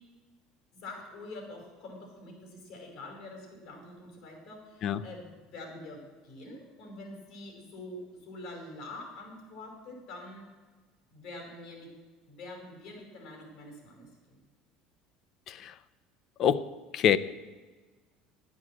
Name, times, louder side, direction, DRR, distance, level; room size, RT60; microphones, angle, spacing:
voice 1, 0.7-10.5 11.1-11.9 12.3-14.4, left 2 dB, 70° left, 1 dB, 5.0 m, -45 dB
voice 2, 4.8-5.0 15.5-15.7 16.4-16.6 16.9-17.2, left 9 dB, 50° left, 15 dB, 0.6 m, -25 dB
11.0 x 8.2 x 7.6 m, 1.3 s
supercardioid pair, 105°, 0 cm